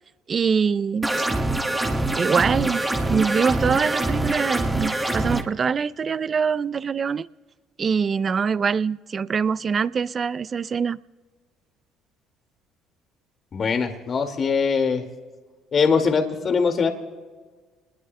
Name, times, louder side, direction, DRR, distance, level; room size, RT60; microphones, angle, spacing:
voice 1, 0.3-1.3 2.2-2.8 3.1-7.3 7.8-11.0, right 6 dB, 40° right, 0.4 m, -24 dB
sound 1, 1.0-5.4, right 2 dB, 15° right, 1.6 m, -24 dB
voice 2, 13.5-15.0 15.7-16.9, left 5 dB, 45° left, 2.0 m, -22 dB
29.5 x 21.0 x 2.2 m
supercardioid pair, 75°, 0 cm